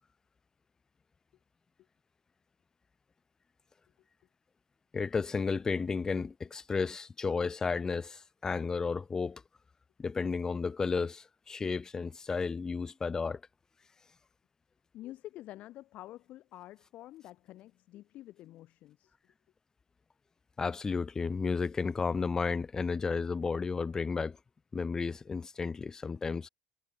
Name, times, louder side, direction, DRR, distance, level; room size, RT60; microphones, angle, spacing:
voice 1, 4.9-9.4 10.0-13.4 20.6-24.4 24.7-26.5, left 4 dB, 25° left, 0.7 m, -33 dB
voice 2, 14.9-19.1, left 15 dB, 60° left, 5.2 m, -48 dB
supercardioid pair, 100°, 3 cm